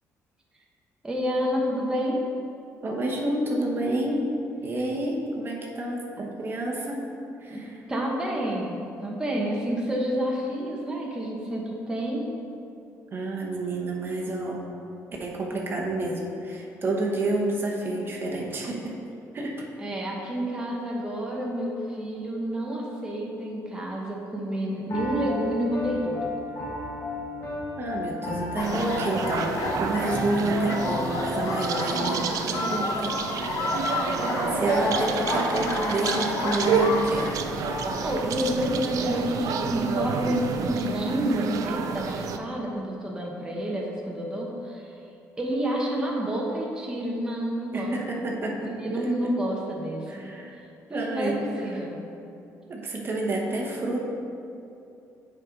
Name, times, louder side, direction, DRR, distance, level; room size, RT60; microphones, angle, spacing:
voice 1, 1.0-2.2 7.5-12.3 19.8-26.3 38.0-44.9 45.4-48.3 48.6-50.3 50.9-51.3 51.6-52.0, equal, 10° right, -3 dB, 1.0 m, -29 dB
voice 2, 2.8-4.2 4.6-7.0 7.4-7.8 13.1-14.7 15.2-19.0 19.3-19.7 27.8-33.1 33.5-34.2 34.5-37.4 47.7-48.7 50.1-50.6 50.9-51.5 52.7-54.1, right 2 dB, 35° right, -2 dB, 1.0 m, -29 dB
Piano, 24.9-31.7, left 2 dB, 45° left, 1.6 m, -34 dB
sound 1, 28.6-38.1, left 3 dB, 70° left, 0.8 m, -30 dB
sound 2, 28.6-42.4, right 6 dB, 65° right, 0.4 m, -29 dB
7.5 x 4.9 x 3.8 m, 2.7 s
cardioid pair, 105°, 6 cm